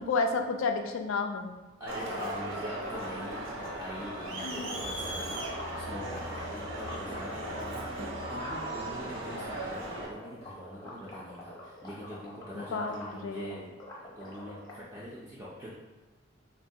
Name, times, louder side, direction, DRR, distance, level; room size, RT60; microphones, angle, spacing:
voice 1, 0.0-1.5 4.4-4.7 12.5-12.9 13.2-13.6, left 4 dB, 80° left, 5 dB, 0.3 m, -31 dB
sound 1, 1.8-7.8 8.2-14.8, left 1 dB, 20° left, 0.7 m, -46 dB
voice 2, 1.8-13.7 14.2-15.7, equal, 15° right, -8 dB, 0.3 m, -43 dB
Crowd, 1.9-10.1, right 1 dB, 75° right, 0.6 m, -37 dB
3.1 x 2.2 x 2.7 m, 1.1 s
head